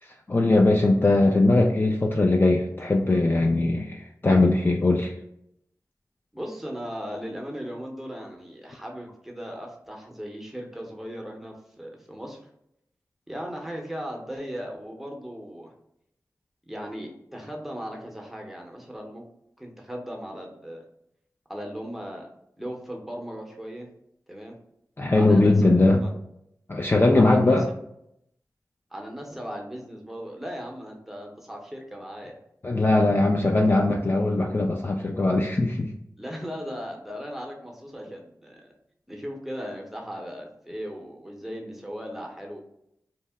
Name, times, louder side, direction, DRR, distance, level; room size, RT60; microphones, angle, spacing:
voice 1, 0.3-5.1 25.0-26.0 26.7-27.7 32.6-35.9, left 2 dB, 30° left, 1 dB, 0.3 m, -20 dB
voice 2, 6.3-12.4 13.3-15.7 16.7-19.2 19.6-20.8 21.5-22.3 22.6-23.9 24.3-24.6 25.1-26.1 27.1-27.7 28.9-32.4 36.2-38.7 39.1-42.6, equal, 5° right, 0 dB, 0.8 m, -37 dB
2.8 x 2.0 x 3.4 m, 0.76 s
cardioid pair, 45°, 7 cm